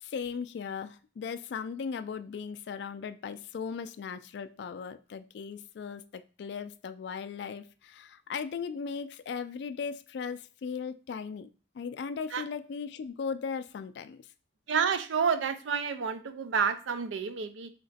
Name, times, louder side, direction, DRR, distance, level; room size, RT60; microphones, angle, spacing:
voice 1, 0.0-11.5 11.7-14.3, left 6 dB, 65° left, 11 dB, 0.3 m, -37 dB
voice 2, 14.7-17.7, right 6 dB, 85° right, 11 dB, 0.4 m, -29 dB
3.2 x 2.9 x 4.1 m, 0.35 s
head